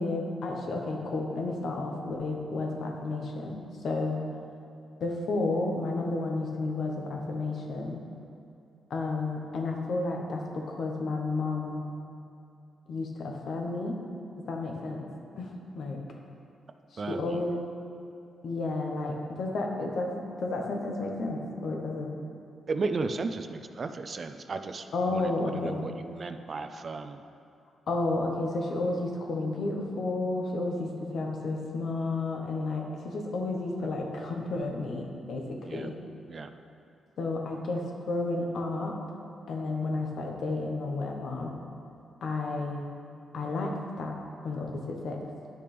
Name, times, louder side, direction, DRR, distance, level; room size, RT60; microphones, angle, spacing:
voice 1, 0.0-4.2 5.0-8.0 8.9-11.8 12.9-14.0 14.4-15.1 15.4-16.0 17.1-17.6 18.4-22.1 24.9-25.8 27.9-36.0 37.2-39.0 39.5-41.5 42.2-42.9 43.3-44.2 44.4-45.2, left 2 dB, 65° left, 1 dB, 1.1 m, -32 dB
voice 2, 17.0-17.6 22.7-27.2 33.8-34.0 35.6-35.9 36.3-36.5, right 3 dB, 45° right, 8 dB, 0.4 m, -35 dB
10.0 x 6.6 x 3.4 m, 2.7 s
cardioid pair, 95°, 0 cm